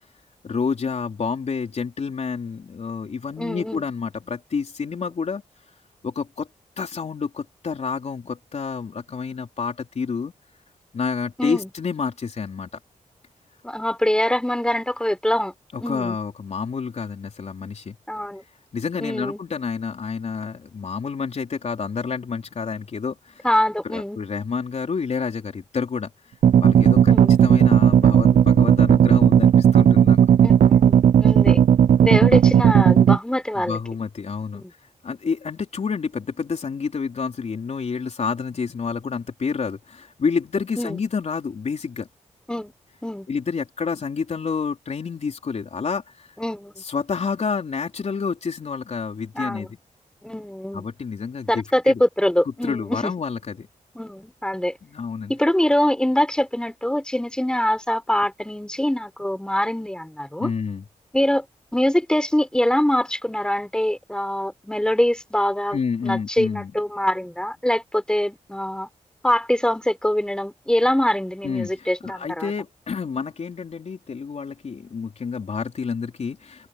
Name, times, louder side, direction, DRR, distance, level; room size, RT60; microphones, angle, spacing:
voice 1, 0.4-5.4 6.0-6.5 6.8-10.3 10.9-12.7 15.7-18.0 18.7-23.5 23.8-26.1 26.6-27.1 27.4-30.2 33.5-34.6 35.0-42.1 43.3-46.3 46.8-49.8 50.7-52.0 52.5-53.7 54.8-55.3 60.4-60.8 65.7-66.7 71.4-76.7, left 5 dB, 60° left, 4.1 m, -29 dB
voice 2, 3.4-3.8 11.4-11.7 13.6-15.5 15.8-16.2 18.1-18.4 19.0-19.4 23.4-24.2 27.1-27.3 30.4-31.6 32.0-33.8 34.5-34.7 40.8-41.0 42.5-42.7 43.0-43.3 46.4-46.7 49.4-49.7 50.2-50.9 51.5-53.1 53.9-54.8 55.3-60.5 61.1-61.4 61.7-65.8 66.0-68.9 69.2-72.5, left 1 dB, 5° left, 4.2 m, -23 dB
sound 1, 26.4-33.2, right 9 dB, 80° right, 0.5 m, -15 dB
wide cardioid pair, 95°, 13 cm